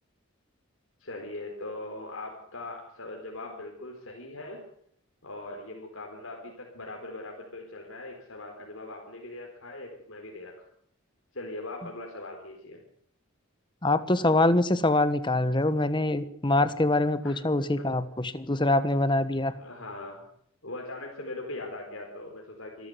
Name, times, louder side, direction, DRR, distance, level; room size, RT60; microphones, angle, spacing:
voice 1, 1.0-4.6 5.2-10.5 11.3-12.8 17.2-17.8 19.6-20.3 20.6-22.9, left 2 dB, 70° left, 0 dB, 4.2 m, -40 dB
voice 2, 13.8-19.5, left 2 dB, 20° left, 13 dB, 1.3 m, -24 dB
26.0 x 13.5 x 8.0 m, 0.67 s
head